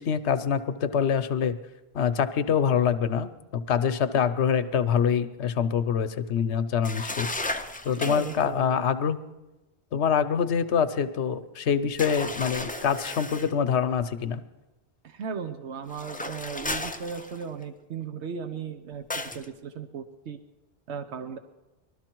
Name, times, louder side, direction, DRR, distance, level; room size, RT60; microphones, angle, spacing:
voice 1, 0.0-1.6 1.9-7.3 7.8-9.2 9.9-14.4, left 7 dB, 90° left, 11 dB, 1.0 m, -25 dB
sound 1, 6.8-8.5 12.0-13.5 15.9-17.6 19.1-19.5, left 2 dB, 10° left, 0.4 m, -34 dB
voice 2, 7.9-8.7 15.0-20.4 20.9-21.4, right 6 dB, 85° right, 8 dB, 1.1 m, -36 dB
20.0 x 12.5 x 4.5 m, 1.0 s
omnidirectional pair, 1.1 m